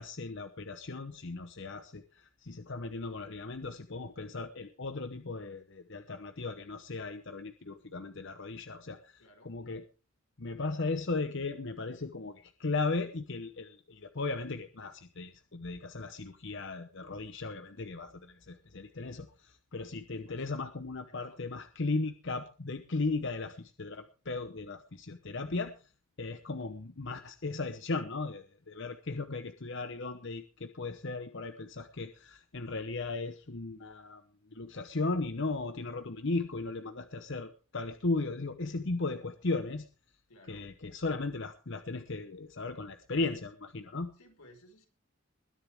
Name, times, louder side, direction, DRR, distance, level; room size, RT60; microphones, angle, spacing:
voice 1, 0.0-9.8 10.4-25.9 26.2-34.2 34.5-39.9 40.5-44.1, left 3 dB, 55° left, 9 dB, 0.9 m, -36 dB
voice 2, 9.2-9.6 20.1-20.5 21.1-21.4 40.3-40.7 44.2-44.9, left 1 dB, 90° left, 4 dB, 4.7 m, -58 dB
21.0 x 10.5 x 3.5 m, 0.35 s
head